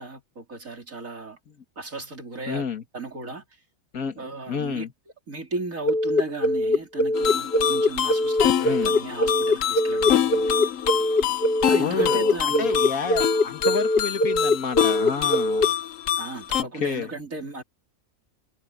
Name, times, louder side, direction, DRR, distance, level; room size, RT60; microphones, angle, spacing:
voice 1, 0.0-1.4 1.8-2.6 2.9-3.4 4.2-4.9 5.3-10.6 11.7-12.7 16.2-17.6, right 3 dB, 70° right, 4.0 m, -35 dB
voice 2, 2.5-2.8 3.9-4.9 8.6-9.0 11.8-15.7 16.6-17.1, left 6 dB, 90° left, 2.2 m, -30 dB
sound 1, 5.9-15.7, left 1 dB, 45° left, 2.4 m, -22 dB
sound 2, 7.1-16.6, left 10 dB, 70° left, 1.2 m, -26 dB
omnidirectional pair, 1.4 m